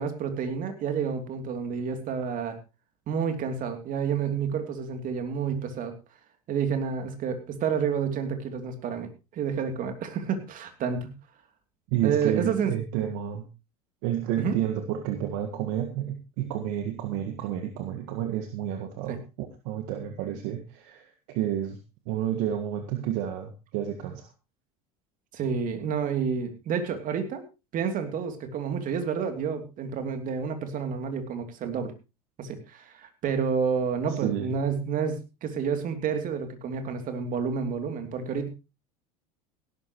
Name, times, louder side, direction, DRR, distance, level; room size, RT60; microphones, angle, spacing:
voice 1, 0.0-2.6 3.1-5.9 6.5-11.1 12.0-12.7 14.4-14.6 19.1-19.2 25.3-27.4 27.7-31.9 32.4-38.5, right 6 dB, 45° right, 7 dB, 3.0 m, -29 dB
voice 2, 11.9-13.4 14.0-21.8 22.1-24.3 34.1-34.5, right 11 dB, 65° right, 6 dB, 1.7 m, -30 dB
17.0 x 12.5 x 3.1 m, 0.28 s
hypercardioid pair, 80°, 19 cm